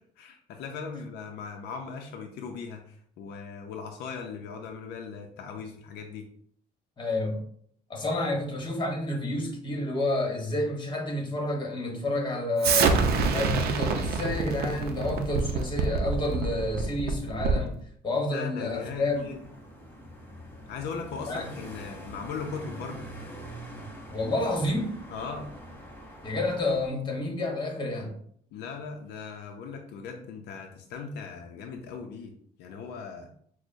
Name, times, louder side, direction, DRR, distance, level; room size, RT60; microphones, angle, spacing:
voice 1, 0.2-6.3 18.3-19.4 20.7-23.1 25.1-25.5 28.5-32.3 32.6-33.3, left 5 dB, 80° left, 3 dB, 0.5 m, -38 dB
voice 2, 7.0-7.4 7.9-13.0 13.3-17.8 18.0-19.4 21.3-21.4 24.1-25.0 26.2-28.1, left 2 dB, 25° left, 2 dB, 1.2 m, -29 dB
Explosion, 12.6-17.7, right 5 dB, 65° right, 0.5 m, -26 dB
sound 1, 18.7-26.9, right 1 dB, 10° left, 0.8 m, -44 dB
6.0 x 2.1 x 2.6 m, 0.62 s
cardioid pair, 110°, 17 cm